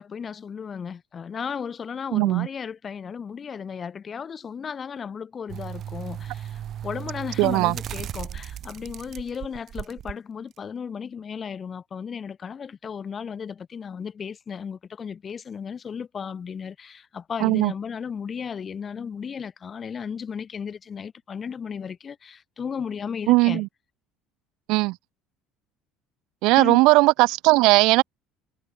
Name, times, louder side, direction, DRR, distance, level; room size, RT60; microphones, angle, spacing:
voice 1, 0.0-23.7 26.6-26.8, left 6 dB, 35° left, 6.6 m, -35 dB
voice 2, 2.1-2.5 7.4-7.7 17.4-17.7 23.3-23.7 24.7-24.9 26.4-28.0, right 23 dB, 65° right, 1.1 m, -18 dB
sound 1, 5.5-10.1 10.6-10.7, right 10 dB, 50° right, 5.2 m, -36 dB
hypercardioid pair, 60°, 0 cm